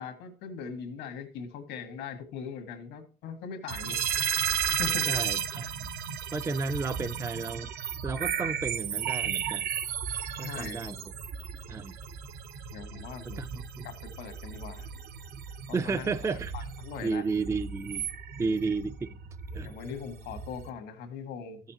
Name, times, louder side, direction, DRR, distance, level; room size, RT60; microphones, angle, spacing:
voice 1, 0.0-4.1 4.7-5.1 10.4-10.9 12.7-13.4 13.8-14.9 15.7-17.2 19.6-21.6, left 6 dB, 85° left, 1.6 m, -40 dB
sound 1, 3.7-20.7, right 8 dB, 70° right, 0.8 m, -34 dB
voice 2, 5.1-5.9 6.3-7.7 8.0-9.7 10.4-11.0 11.7-12.0 13.4-13.9 15.7-16.5 17.0-18.1 18.4-19.2 19.5-19.7, right 4 dB, 15° right, 0.4 m, -32 dB
14.0 x 6.5 x 2.8 m
cardioid pair, 110°, 17 cm